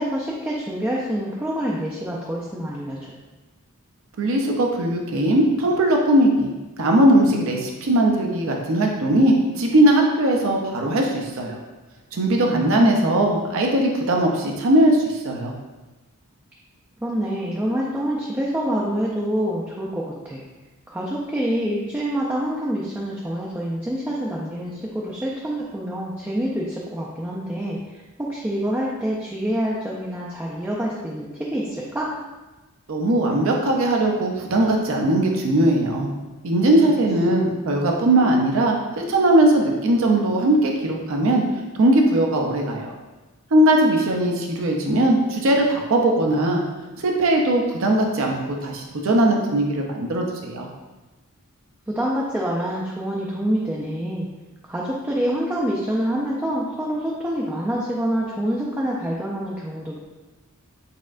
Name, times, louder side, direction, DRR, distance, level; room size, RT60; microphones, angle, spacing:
voice 1, 0.0-3.1 12.5-13.1 17.0-20.4 20.9-27.8 28.2-32.1 51.9-54.3 54.7-60.0, equal, 10° right, -5 dB, 0.3 m, -26 dB
voice 2, 4.2-11.6 12.1-15.5 32.9-36.1 36.4-41.4 41.8-42.9 43.5-46.6 47.0-50.7, right 1 dB, 60° right, 1 dB, 0.5 m, -19 dB
4.2 x 3.5 x 2.4 m, 1.2 s
head